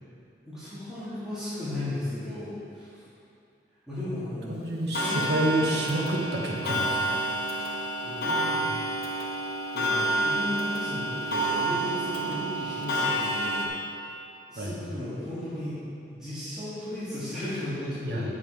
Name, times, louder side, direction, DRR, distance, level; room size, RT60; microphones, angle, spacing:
voice 1, 0.5-3.0 3.9-4.7 5.0-5.5 7.6-8.9 9.5-13.8 14.5-15.8 16.1-18.3, left 1 dB, 5° right, -14 dB, 1.8 m, -35 dB
voice 2, 4.5-7.2 14.6-14.7 18.0-18.3, right 1 dB, 70° right, -2 dB, 1.2 m, -28 dB
Clock, 4.9-13.7, right 1 dB, 60° left, 1.0 m, -29 dB
7.4 x 6.0 x 4.6 m, 2.6 s
head